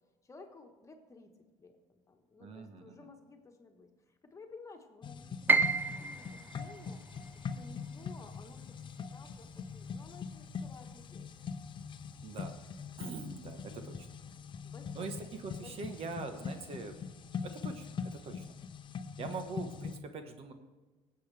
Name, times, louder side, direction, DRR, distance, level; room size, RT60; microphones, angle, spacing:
voice 1, 0.2-1.3 1.6-7.0 7.4-11.3 14.6-15.1 15.6-16.1, left 3 dB, 25° left, 4 dB, 1.5 m, -55 dB
voice 2, 2.4-3.1 12.2-12.6 13.0-14.1 14.9-17.0 17.4-18.4 19.2-20.5, right 4 dB, 50° right, 7 dB, 1.3 m, -43 dB
sound 1, 5.0-20.0, left 6 dB, 40° left, 0.7 m, -43 dB
Piano, 5.5-11.4 11.7-12.9 13.3-13.4 14.1-14.4, right 3 dB, 15° right, 0.3 m, -35 dB
18.5 x 8.0 x 3.4 m, 1.3 s
cardioid pair, 105°, 13 cm